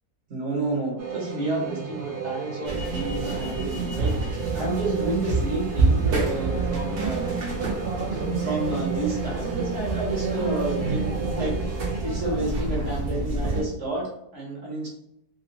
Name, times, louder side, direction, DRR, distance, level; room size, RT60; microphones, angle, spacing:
voice 1, 0.3-7.3 8.1-11.5 12.0-14.9, right 2 dB, 50° right, -1 dB, 1.0 m, -30 dB
sound 1, 1.0-12.0, right 6 dB, 85° right, 1.3 m, -33 dB
sound 2, 2.6-13.6, right 3 dB, 70° right, 0.5 m, -28 dB
sound 3, 2.9-12.5, left 1 dB, 85° left, 0.5 m, -43 dB
2.8 x 2.7 x 2.9 m, 0.76 s
omnidirectional pair, 1.9 m